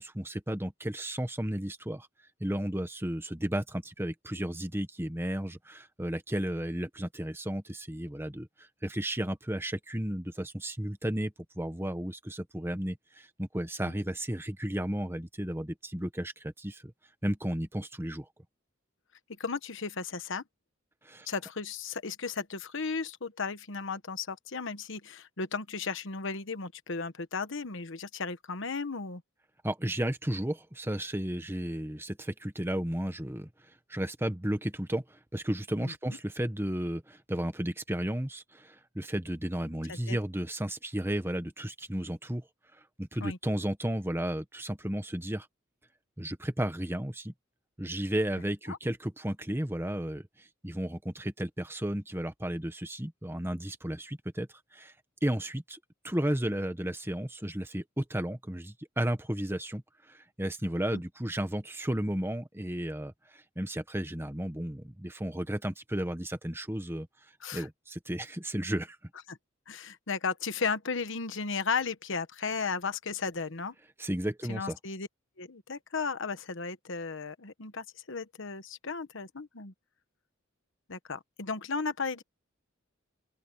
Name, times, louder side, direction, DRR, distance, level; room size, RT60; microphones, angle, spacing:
voice 1, 0.0-2.1 2.4-16.9 17.2-18.3 21.0-21.3 29.6-33.5 33.9-42.4 43.0-45.5 46.2-47.3 47.8-54.9 55.2-55.8 56.0-67.1 67.5-69.0 74.0-74.8, right 1 dB, 10° right, 1.5 m, -33 dB
voice 2, 19.4-20.4 21.3-29.2 35.8-35.9 39.9-40.2 43.2-43.4 48.7-48.8 60.9-61.0 67.4-67.7 69.3-69.4 69.7-73.7 74.5-75.1 75.4-79.7 80.9-82.2, left 5 dB, 65° left, 1.2 m, -35 dB
open air
head